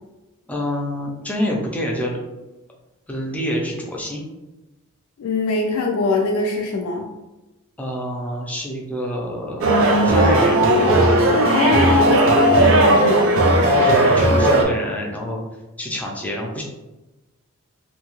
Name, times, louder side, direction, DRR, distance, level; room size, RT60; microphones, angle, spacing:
voice 1, 0.5-2.2 3.1-4.2 7.8-10.6 11.7-11.9 13.7-15.4 15.8-16.6, equal, 5° left, -2 dB, 0.4 m, -27 dB
voice 2, 5.2-7.1 11.5-12.2 12.6-13.3, left 3 dB, 75° left, 2 dB, 0.3 m, -22 dB
sound 1, 9.6-14.6, right 1 dB, 60° right, 0.5 m, -15 dB
2.7 x 2.3 x 3.0 m, 1.1 s
head